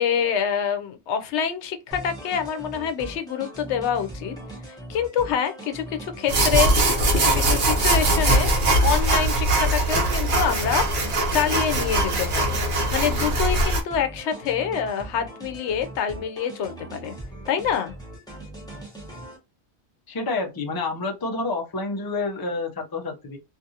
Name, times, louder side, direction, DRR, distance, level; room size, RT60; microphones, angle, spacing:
voice 1, 0.0-4.3 4.7-8.5 8.8-17.1 17.5-17.9, left 8 dB, 90° left, 0.9 m, -26 dB
sound 1, 1.9-19.4, right 1 dB, 5° left, 1.0 m, -40 dB
sound 2, 6.3-13.8, right 1 dB, 50° right, 0.9 m, -21 dB
voice 2, 20.1-23.4, left 3 dB, 25° left, 0.5 m, -28 dB
2.6 x 2.5 x 2.7 m
omnidirectional pair, 1.1 m